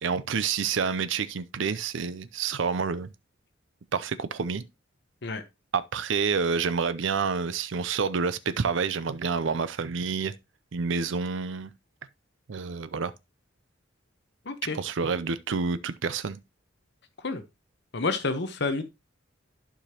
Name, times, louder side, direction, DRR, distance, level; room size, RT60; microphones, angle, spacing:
voice 1, 0.0-3.1 3.9-4.6 5.7-10.3 10.7-11.7 12.5-13.1 14.7-16.4, right 5 dB, 65° right, 0.5 m, -28 dB
voice 2, 14.5-14.8 17.2-17.4 17.9-18.8, left 3 dB, 60° left, 0.9 m, -29 dB
11.5 x 4.9 x 2.9 m
head